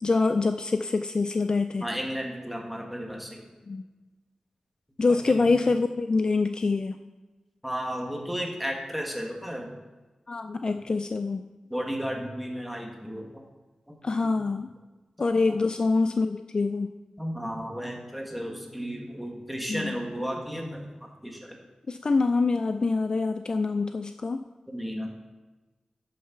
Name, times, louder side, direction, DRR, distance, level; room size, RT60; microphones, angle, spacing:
voice 1, 0.0-1.8 3.7-3.8 5.0-7.0 10.3-11.4 14.0-14.7 15.2-16.9 19.7-20.0 21.9-24.4, left 3 dB, 40° left, 8 dB, 0.3 m, -25 dB
voice 2, 1.8-3.4 5.1-5.4 7.6-9.7 11.7-13.5 13.9-14.0 14.5-14.6 15.5-15.6 17.2-21.6 24.7-25.1, equal, ahead, 0 dB, 1.6 m, -34 dB
8.6 x 6.5 x 5.9 m, 1.2 s
wide cardioid pair, 130°, 2 cm